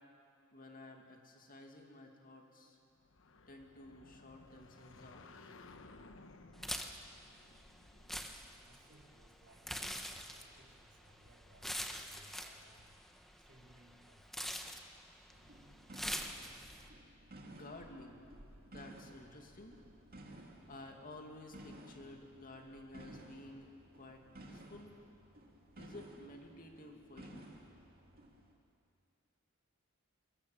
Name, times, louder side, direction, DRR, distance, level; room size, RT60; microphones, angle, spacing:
voice 1, 0.5-2.8 3.5-5.4 17.5-18.2 18.7-19.8 20.7-23.7 23.9-25.0 25.8-27.5, left 2 dB, 45° left, 2 dB, 2.5 m, -53 dB
sound 1, 2.9-9.5, left 3 dB, 65° left, 1.2 m, -59 dB
sound 2, 6.5-16.9, equal, ahead, 1.2 m, -45 dB
voice 2, 8.6-13.0 13.4-14.2, right 1 dB, 60° right, -1 dB, 3.5 m, -64 dB
sound 3, 15.3-28.5, right 1 dB, 45° right, 2.5 m, -56 dB
23.0 x 21.5 x 7.2 m, 2.5 s
head